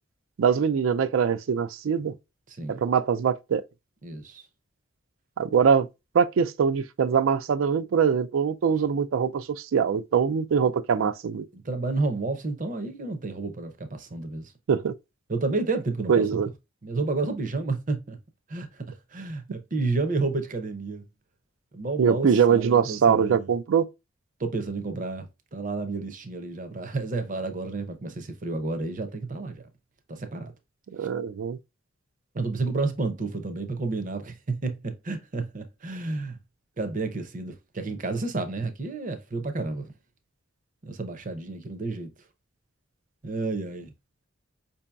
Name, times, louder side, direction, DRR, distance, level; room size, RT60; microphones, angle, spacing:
voice 1, 0.4-2.1 2.7-3.6 5.4-5.9 6.1-11.5 14.7-14.9 16.1-16.5 22.0-23.9 30.9-31.6, right 6 dB, 85° right, 0.4 m, -23 dB
voice 2, 2.5-2.8 4.0-4.4 11.5-14.5 15.3-16.4 16.8-18.2 18.5-21.1 21.7-23.5 24.4-25.3 25.5-29.6 30.1-30.5 32.3-36.4 36.8-39.9 40.8-42.1 43.2-43.9, right 3 dB, 40° right, 0.6 m, -31 dB
5.2 x 2.7 x 2.2 m
head